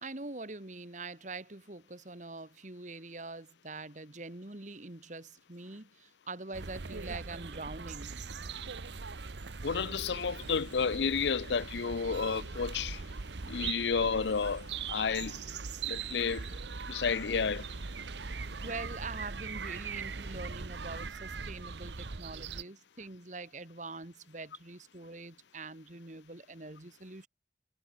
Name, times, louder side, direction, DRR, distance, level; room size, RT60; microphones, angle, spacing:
voice 1, 0.0-8.2 18.6-27.3, right 3 dB, 45° right, 1.7 m, -44 dB
sound 1, 6.5-22.6, right 5 dB, 80° right, 1.0 m, -41 dB
voice 2, 9.6-13.0 13.5-15.4 15.8-16.5 16.9-17.7, left 5 dB, 80° left, 0.6 m, -31 dB
head